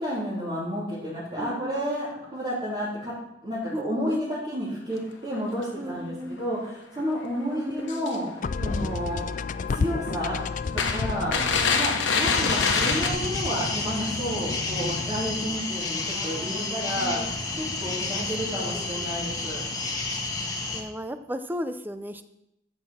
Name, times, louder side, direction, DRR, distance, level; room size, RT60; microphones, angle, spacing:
voice 1, 0.0-3.1 3.4-8.3 8.6-9.4 9.7-10.4 10.7-17.2 17.5-19.6, equal, 25° right, -11 dB, 3.5 m, -31 dB
voice 2, 1.4-1.9 3.7-4.1 5.8-6.4 7.4-8.3 11.4-11.8 16.1-17.3 18.1-18.3 18.5-19.1 20.7-22.2, equal, 10° right, 10 dB, 0.6 m, -36 dB
sound 1, 5.0-5.1 5.4-5.6 6.4-6.5 7.0-7.1 7.8-8.4 8.7-9.2 9.5-9.6 10.1-10.2 10.8-13.1, left 5 dB, 90° left, 1.3 m, -25 dB
sound 2, 8.4-15.7, left 4 dB, 45° left, 0.4 m, -32 dB
sound 3, 12.2-20.8, left 3 dB, 20° left, 1.4 m, -31 dB
13.5 x 7.8 x 4.3 m, 0.83 s
head